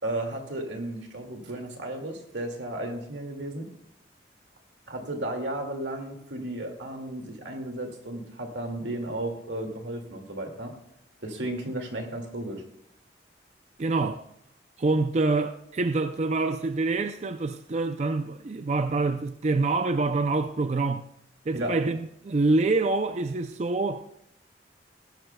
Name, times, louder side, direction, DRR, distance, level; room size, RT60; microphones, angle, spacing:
voice 1, 0.0-3.7 4.9-10.7 11.2-12.6 21.5-21.7, right 1 dB, 90° right, 2.2 m, -34 dB
voice 2, 13.8-14.2 14.8-21.0 21.5-22.0 22.2-24.0, right 3 dB, 40° right, 0.4 m, -26 dB
17.0 x 12.5 x 2.2 m
head